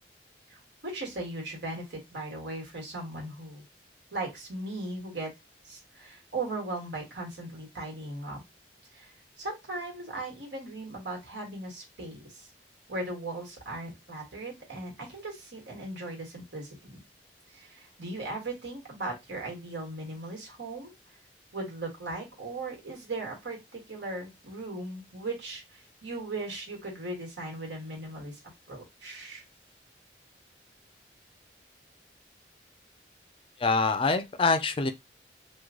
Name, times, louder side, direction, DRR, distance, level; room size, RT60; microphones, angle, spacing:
voice 1, 0.5-3.6 4.1-5.3 5.6-8.4 8.9-12.5 12.9-17.0 17.5-20.9 21.5-28.4 28.7-29.4, right 2 dB, 90° right, 1.5 m, -38 dB
voice 2, 33.6-34.9, left 3 dB, 30° left, 0.4 m, -25 dB
3.1 x 2.2 x 3.6 m
head